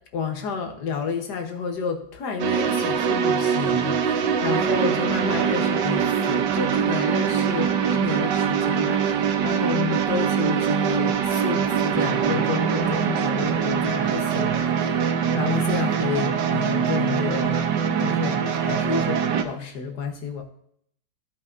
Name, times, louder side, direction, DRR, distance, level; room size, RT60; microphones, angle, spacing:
voice 1, 0.1-20.4, left 6 dB, 70° left, 4 dB, 1.8 m, -30 dB
sound 1, 2.4-19.4, right 7 dB, 90° right, 1.5 m, -23 dB
15.0 x 5.6 x 2.7 m, 0.68 s
omnidirectional pair, 1.8 m